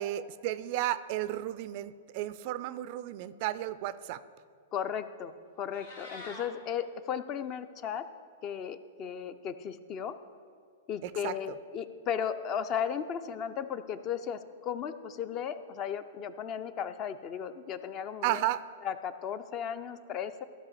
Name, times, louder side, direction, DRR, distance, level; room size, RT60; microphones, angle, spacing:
voice 1, 0.0-4.2 11.0-11.3 18.2-18.6, right 13 dB, 45° right, 15 dB, 0.4 m, -33 dB
voice 2, 4.7-5.3 5.6-8.0 8.4-10.1 10.9-18.4 18.8-20.5, left 8 dB, 35° left, 12 dB, 0.5 m, -35 dB
Meow, 5.5-6.5, left 2 dB, 70° left, 1.9 m, -46 dB
15.0 x 5.0 x 4.2 m, 2.2 s
figure-of-eight pair, 100°, 0 cm